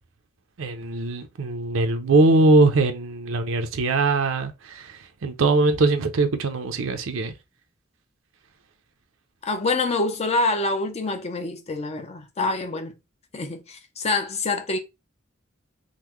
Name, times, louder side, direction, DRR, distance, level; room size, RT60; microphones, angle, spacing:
voice 1, 0.6-7.3, right 2 dB, 80° right, 0.5 m, -21 dB
voice 2, 9.4-13.0 13.3-14.8, left 3 dB, 30° left, 0.5 m, -26 dB
3.6 x 2.0 x 3.0 m
head